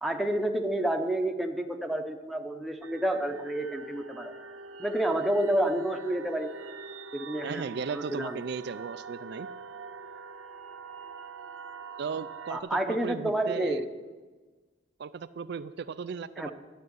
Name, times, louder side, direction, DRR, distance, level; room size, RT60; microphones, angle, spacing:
voice 1, 0.0-4.3 4.8-6.5 7.1-7.6 7.9-8.4 12.5-13.9 16.4-16.5, right 1 dB, ahead, 3 dB, 0.9 m, -29 dB
sound 1, 2.8-12.6, right 4 dB, 80° right, 0.9 m, -43 dB
voice 2, 7.4-9.5 12.0-13.8 15.0-16.5, right 5 dB, 55° right, 12 dB, 0.4 m, -36 dB
12.5 x 7.4 x 9.4 m, 1.3 s
head